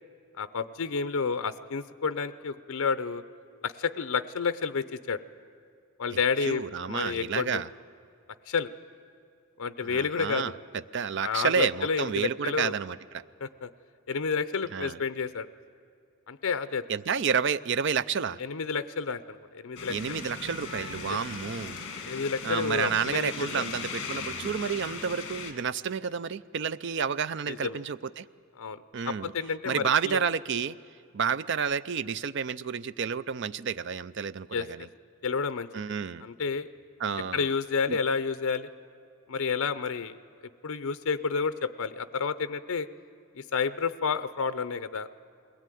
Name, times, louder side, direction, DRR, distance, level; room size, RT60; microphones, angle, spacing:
voice 1, 0.4-3.2 3.6-5.2 6.0-7.6 8.5-8.7 9.6-10.4 11.2-12.7 13.4-13.7 14.1-15.5 16.3-16.8 18.4-20.2 21.1-21.2 22.1-23.6 27.5-27.8 28.6-28.8 29.0-30.2 34.5-34.7 35.2-35.7 36.2-36.7 37.3-38.7 39.3-40.2 40.6-42.9 43.3-45.1, left 5 dB, 75° left, 12 dB, 0.6 m, -30 dB
voice 2, 6.4-7.7 9.8-10.5 10.9-13.2 14.7-15.0 16.9-18.4 19.9-21.8 22.4-28.2 28.9-29.3 29.7-30.8 31.1-34.9 35.7-36.3 37.0-37.5 37.9-38.0, right 6 dB, 55° right, 16 dB, 0.4 m, -30 dB
sound 1, 19.8-25.5, left 4 dB, 55° left, 2.2 m, -38 dB
22.0 x 17.5 x 9.2 m, 2.4 s
head